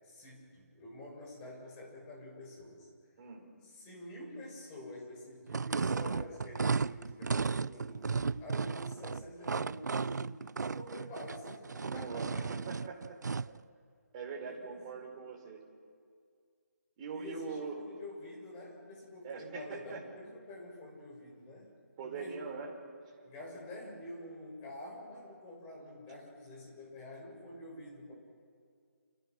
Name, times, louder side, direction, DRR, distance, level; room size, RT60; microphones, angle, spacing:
voice 1, 0.0-2.9 3.6-10.3 10.5-12.5 14.4-15.0 17.1-21.7 22.0-22.5 23.2-28.1, left 1 dB, 15° left, -2 dB, 6.7 m, -48 dB
voice 2, 3.2-3.5 11.8-13.4 14.1-15.6 17.0-17.9 19.2-20.0 22.0-22.7, right 5 dB, 25° right, 0 dB, 4.4 m, -42 dB
sound 1, 5.5-13.6, right 5 dB, 80° right, 0.6 m, -34 dB
29.5 x 29.0 x 6.3 m, 2.2 s
hypercardioid pair, 165°, 9 cm